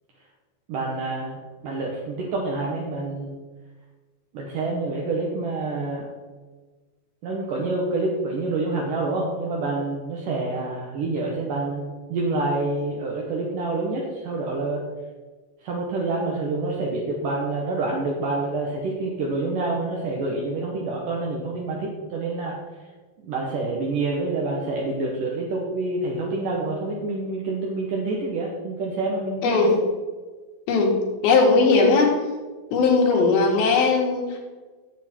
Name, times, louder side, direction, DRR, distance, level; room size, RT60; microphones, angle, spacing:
voice 1, 0.7-3.4 4.3-6.1 7.2-14.8 15.6-22.6 23.2-29.7, right 3 dB, 65° right, -2 dB, 2.7 m, -27 dB
voice 2, 29.4-29.8 30.7-31.0 31.2-32.2 32.7-34.4, left 4 dB, 75° left, -2 dB, 3.6 m, -18 dB
13.5 x 8.3 x 4.5 m, 1.3 s
omnidirectional pair, 4.4 m